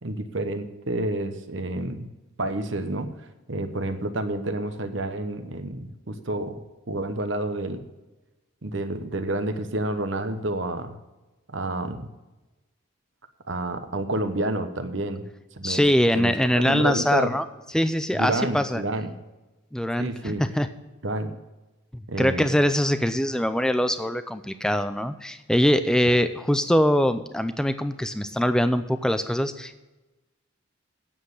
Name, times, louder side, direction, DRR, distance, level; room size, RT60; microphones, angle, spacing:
voice 1, 0.0-2.1 2.4-3.1 3.5-6.6 6.9-7.9 8.6-11.0 11.5-12.1 13.5-15.3 15.6-15.8 16.1-17.3 18.1-19.1 20.0-20.4 21.0-21.3 22.1-22.5, right 2 dB, 60° right, 9 dB, 1.0 m, -29 dB
voice 2, 15.6-17.5 17.7-18.8 19.7-20.7 21.9-29.8, equal, 5° left, 10 dB, 0.5 m, -23 dB
9.0 x 7.4 x 8.0 m, 1.1 s
head